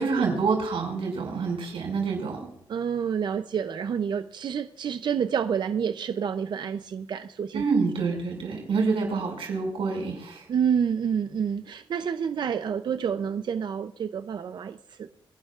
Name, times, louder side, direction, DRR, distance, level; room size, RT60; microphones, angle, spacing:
voice 1, 0.0-2.5 7.5-10.5, right 4 dB, 85° right, 1 dB, 6.0 m, -27 dB
voice 2, 2.7-7.6 10.5-15.1, right 7 dB, 55° right, 10 dB, 0.6 m, -28 dB
29.0 x 12.0 x 2.5 m, 0.69 s
wide cardioid pair, 165°, 9 cm